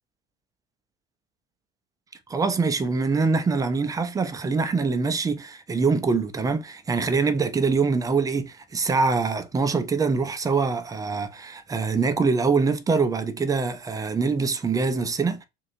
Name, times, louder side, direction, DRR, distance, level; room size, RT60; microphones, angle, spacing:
voice 1, 2.3-15.4, right 4 dB, 10° right, 0.4 m, -24 dB
3.0 x 2.5 x 2.5 m
figure-of-eight pair, 70°, 31 cm